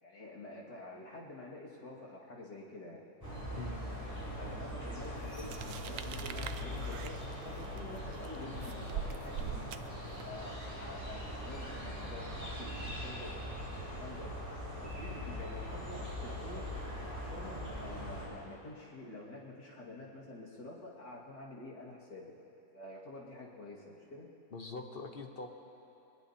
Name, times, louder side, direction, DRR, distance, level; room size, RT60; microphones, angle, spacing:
voice 1, 0.0-3.0 4.3-7.2 7.4-9.8 10.2-13.3 13.9-14.4 14.8-16.7 17.0-22.3 22.7-24.3, left 2 dB, 75° left, -4 dB, 2.7 m, -48 dB
sound 1, 3.2-18.3, equal, 10° left, 4.9 m, -41 dB
voice 2, 3.6-3.9 24.5-25.5, left 3 dB, 40° left, 3 dB, 1.0 m, -43 dB
sound 2, 5.3-10.4, right 8 dB, 65° right, 0.8 m, -44 dB
23.0 x 19.5 x 2.9 m, 2.8 s
omnidirectional pair, 1.8 m